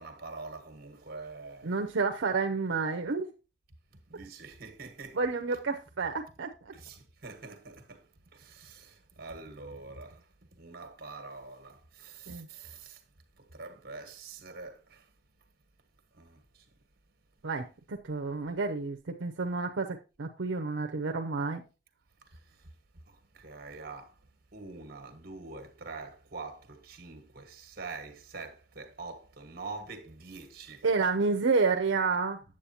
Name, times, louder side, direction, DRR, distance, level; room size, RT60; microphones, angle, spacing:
voice 1, 0.0-1.7 4.1-5.2 6.7-13.0 13.4-15.1 16.1-16.6 22.3-22.7 23.1-24.2 24.5-30.9, right 3 dB, 55° right, 1.4 m, -45 dB
voice 2, 1.6-3.3 5.1-6.7 12.3-12.5 17.4-21.6 30.8-32.4, right 4 dB, 80° right, 0.7 m, -30 dB
8.5 x 7.7 x 2.8 m
head